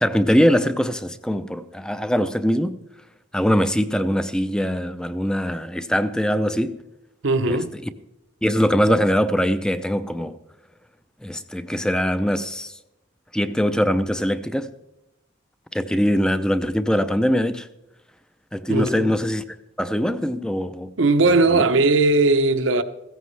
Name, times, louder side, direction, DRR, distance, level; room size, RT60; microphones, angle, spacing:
voice 1, 0.0-2.8 3.3-6.8 7.5-7.6 8.4-10.3 11.2-12.7 13.3-14.7 15.7-17.7 18.5-19.4 19.8-20.9 21.5-21.6, equal, 5° left, 0.4 m, -22 dB
voice 2, 7.2-7.8 18.7-19.2 21.0-22.8, right 3 dB, 75° right, 0.8 m, -18 dB
16.0 x 14.5 x 3.3 m
head